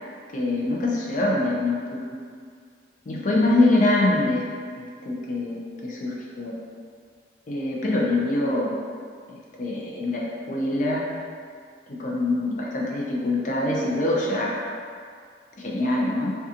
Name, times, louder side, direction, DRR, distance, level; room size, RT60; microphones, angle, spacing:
voice 1, 0.3-2.0 3.1-4.4 5.0-6.5 7.5-8.7 9.3-11.0 12.0-14.5 15.6-16.4, left 2 dB, 45° left, -3 dB, 0.4 m, -24 dB
2.4 x 2.2 x 2.7 m, 2.1 s
head